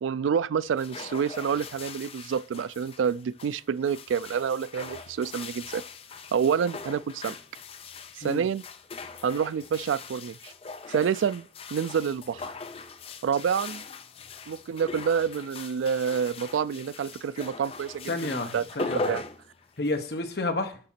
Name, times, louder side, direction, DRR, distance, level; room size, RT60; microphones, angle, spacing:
voice 1, 0.0-5.8 6.3-7.3 8.2-8.6 9.2-10.5 10.9-12.5 13.2-13.8 14.5-19.2, right 7 dB, 85° right, 0.3 m, -28 dB
sound 1, 0.6-20.2, left 4 dB, 30° left, 0.4 m, -40 dB
voice 2, 18.1-19.0 19.8-20.8, left 2 dB, 55° left, 1.0 m, -30 dB
6.7 x 5.1 x 5.7 m
head